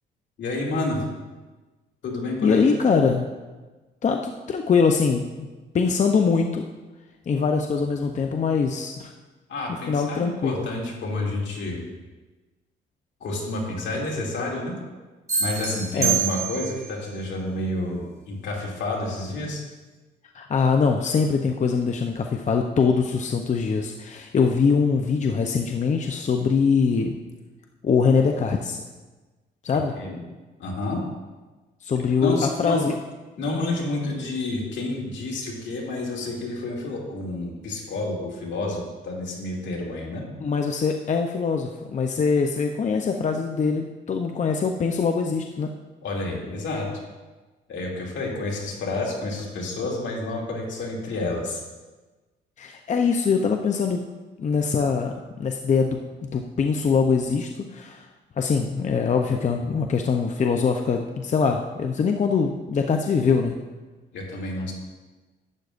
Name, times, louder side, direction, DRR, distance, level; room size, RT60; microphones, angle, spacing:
voice 1, 0.4-1.1 2.0-2.6 9.5-11.8 13.2-14.8 15.4-19.6 30.0-30.2 30.6-31.0 32.1-32.8 33.4-40.2 46.0-46.9 47.7-51.6 64.1-64.7, left 2 dB, 70° left, -2 dB, 2.4 m, -29 dB
voice 2, 2.4-3.3 4.0-5.5 5.7-6.6 7.3-9.1 9.9-10.7 15.9-16.2 20.3-27.2 27.8-28.8 29.6-29.9 31.8-32.9 40.4-45.7 52.6-54.0 54.4-58.1 58.4-63.6, left 5 dB, 35° left, 3 dB, 0.6 m, -23 dB
sound 1, 15.3-16.9, right 7 dB, 15° right, 2.0 m, -26 dB
11.5 x 9.2 x 2.5 m, 1.2 s
cardioid pair, 90°, 20 cm